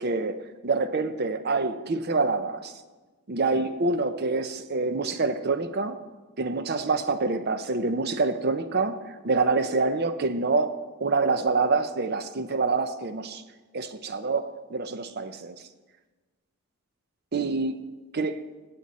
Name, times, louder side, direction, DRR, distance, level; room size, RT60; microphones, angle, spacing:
voice 1, 0.0-2.7 3.3-6.0 6.4-13.4 13.7-15.6 17.3-17.9 18.1-18.4, right 3 dB, 45° right, 11 dB, 0.6 m, -26 dB
16.0 x 7.5 x 4.2 m, 1.3 s
head